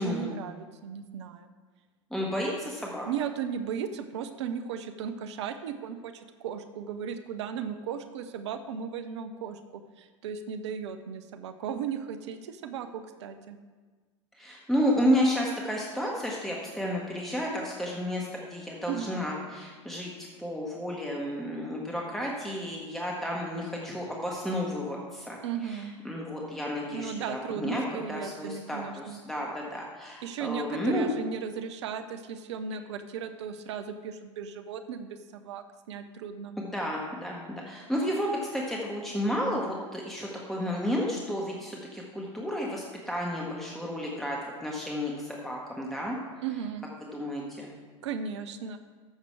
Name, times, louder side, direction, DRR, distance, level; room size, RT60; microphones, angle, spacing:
voice 1, 0.0-1.5 3.1-13.6 18.9-19.1 25.4-25.9 26.9-29.2 30.2-36.6 46.4-46.9 48.0-48.8, right 7 dB, 65° right, 9 dB, 0.7 m, -36 dB
voice 2, 2.1-3.1 14.4-20.1 20.4-27.8 28.1-31.1 36.6-46.2 47.1-47.7, equal, ahead, -3 dB, 1.7 m, -31 dB
14.0 x 6.7 x 4.7 m, 1.4 s
figure-of-eight pair, 80°, 16 cm